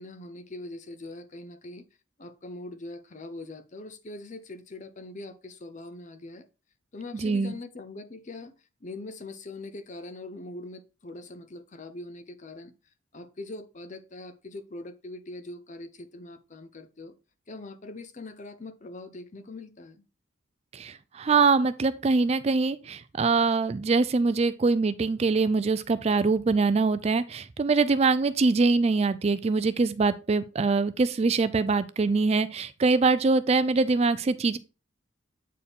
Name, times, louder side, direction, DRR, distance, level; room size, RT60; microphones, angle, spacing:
voice 1, 0.0-1.8 2.2-6.5 6.9-8.5 8.8-12.7 13.1-17.1 17.5-20.0, left 2 dB, 35° left, 0.7 m, -42 dB
voice 2, 7.1-7.5 20.7-34.6, right 4 dB, 30° right, 0.3 m, -23 dB
8.3 x 4.7 x 3.5 m
head